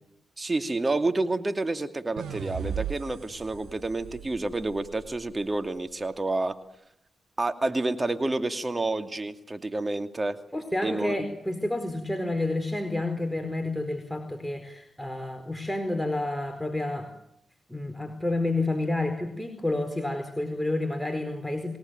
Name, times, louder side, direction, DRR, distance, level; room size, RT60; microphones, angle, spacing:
voice 1, 0.4-6.6 7.4-10.4 10.8-11.3, right 2 dB, 30° right, 8 dB, 2.6 m, -29 dB
sound 1, 2.2-5.4, right 8 dB, 85° right, 2.2 m, -37 dB
voice 2, 10.5-17.1 17.7-21.8, left 2 dB, 5° left, 6 dB, 4.4 m, -29 dB
29.5 x 18.5 x 9.3 m, 0.78 s
supercardioid pair, 45°, 0 cm